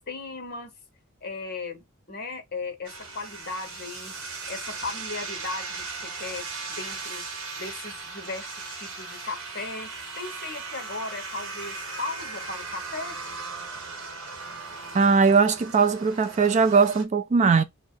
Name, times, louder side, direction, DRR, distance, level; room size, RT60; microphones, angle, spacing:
voice 1, 0.1-0.7 1.2-4.2 4.5-7.2 7.6-13.2, left 3 dB, 45° left, 1.2 m, -37 dB
sound 1, 2.8-17.0, right 4 dB, 65° right, 1.4 m, -38 dB
voice 2, 14.9-17.6, right 5 dB, 30° right, 0.3 m, -20 dB
3.2 x 2.8 x 4.6 m
head